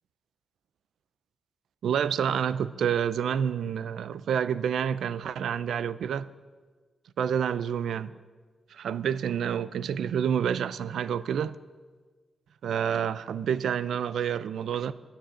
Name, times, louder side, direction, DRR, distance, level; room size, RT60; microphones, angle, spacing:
voice 1, 1.8-6.3 7.2-8.1 8.7-11.6 12.6-14.9, right 8 dB, 85° right, 0.4 m, -28 dB
11.0 x 10.0 x 8.6 m
cardioid pair, 75°, 0 cm